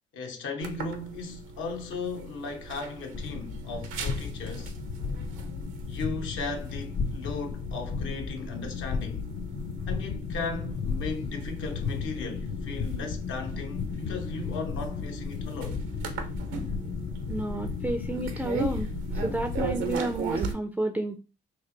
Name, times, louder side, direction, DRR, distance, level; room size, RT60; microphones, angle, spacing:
voice 1, 0.1-4.7 5.9-9.3 9.9-15.8, left 4 dB, 75° left, 0.9 m, -36 dB
sound 1, 0.6-20.5, right 4 dB, 85° right, 0.8 m, -39 dB
sound 2, 3.1-20.0, left 5 dB, 55° left, 0.6 m, -34 dB
voice 2, 17.3-18.9 19.2-21.2, right 1 dB, 10° right, 0.4 m, -31 dB
3.3 x 2.5 x 3.8 m
cardioid pair, 90°, 20 cm